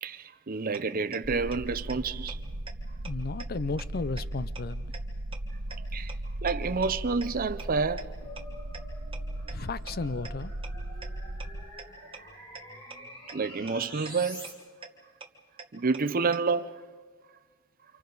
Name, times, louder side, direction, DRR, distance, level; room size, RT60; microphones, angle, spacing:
voice 1, 0.0-2.4 5.8-6.1 6.4-8.1 13.3-14.5 15.7-16.7, right 4 dB, 40° right, 0.6 m, -29 dB
sound 1, 0.7-0.8 1.1-1.2 1.5-1.6 1.9-2.0 2.3-2.4 2.7-2.8 3.0-3.1 3.4-3.5 3.8-3.9 4.2-4.3 4.6-4.7 4.9-5.0 5.3-5.4 5.7-5.8 6.1-6.2 6.5-6.6 6.8-6.9 7.2-7.3 7.6-7.7 8.0-8.1 8.4-8.5 8.7-8.8 9.1-9.2 9.5-9.6 9.9-10.0 10.2-10.3 10.6-10.7 11.0-11.1 11.4-11.5 11.8-11.9 12.1-12.2 12.5-12.6 12.9-13.0 13.3-13.4 13.7-13.8 14.1-14.2 14.4-14.5 14.8-14.9 15.2-15.3 15.6-15.7 15.9-16.0 16.3-16.4, right 5 dB, 25° right, 1.4 m, -42 dB
sound 2, 1.2-11.6, right 1 dB, 85° right, 1.2 m, -37 dB
voice 2, 3.0-4.8 9.5-10.5, left 3 dB, 45° left, 0.5 m, -34 dB
sound 3, 8.2-14.5, equal, 20° left, 4.7 m, -47 dB
30.0 x 27.5 x 3.9 m
head